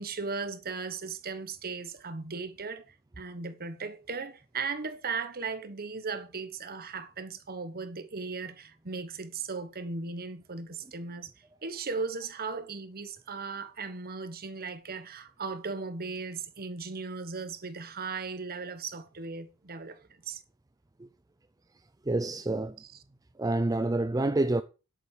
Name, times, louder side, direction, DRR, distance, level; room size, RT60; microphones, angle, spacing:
voice 1, 0.0-11.3 11.6-20.4 22.8-22.9, right 4 dB, 45° right, 1.2 m, -37 dB
voice 2, 22.1-22.8 23.4-24.6, right 2 dB, 15° right, 0.5 m, -27 dB
10.5 x 8.6 x 5.0 m
head